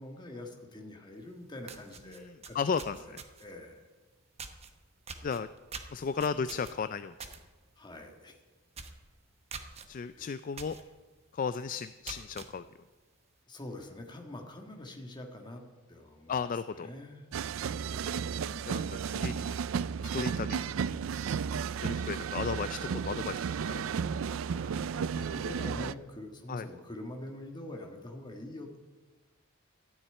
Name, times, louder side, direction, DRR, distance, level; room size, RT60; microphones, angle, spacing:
voice 1, 0.0-2.6 3.0-3.9 7.8-8.4 10.1-10.3 13.5-15.6 15.9-16.4 16.7-17.3 18.3-19.0 24.4-28.8, left 1 dB, 20° left, 3 dB, 1.6 m, -45 dB
sound 1, 1.2-1.3 1.6-3.6 4.4-4.7 5.1-7.4 7.8-8.0 8.3-8.4 8.7-9.0 9.5-9.9 10.6-10.8 11.3-11.4 11.9-12.5, right 5 dB, 30° right, 1.0 m, -44 dB
voice 2, 2.5-3.2 5.2-5.5 5.9-7.3 9.9-10.8 11.3-12.6 16.3-16.9 18.7-19.5 20.0-20.7 21.8-23.8 26.5-26.7, left 5 dB, 40° left, 13 dB, 0.3 m, -34 dB
sound 2, 17.3-25.9, right 6 dB, 65° right, 0.4 m, -33 dB
13.0 x 7.3 x 9.8 m, 1.3 s
head